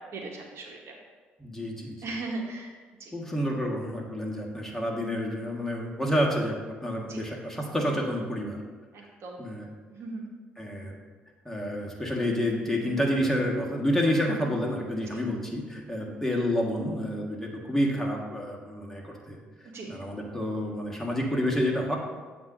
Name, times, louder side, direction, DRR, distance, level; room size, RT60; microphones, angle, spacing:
voice 1, 0.1-0.9 2.0-2.7 3.0-3.1 7.1-7.2 8.9-9.4 9.9-10.2 15.1-15.2 16.0-16.2 19.7-19.9, right 3 dB, 60° right, 0 dB, 1.0 m, -38 dB
voice 2, 1.4-2.1 3.1-8.6 9.4-9.7 10.6-11.0 11.4-19.4 19.9-22.0, equal, 5° left, -2 dB, 1.5 m, -29 dB
7.8 x 2.6 x 5.8 m, 1.4 s
hypercardioid pair, 50°, 5 cm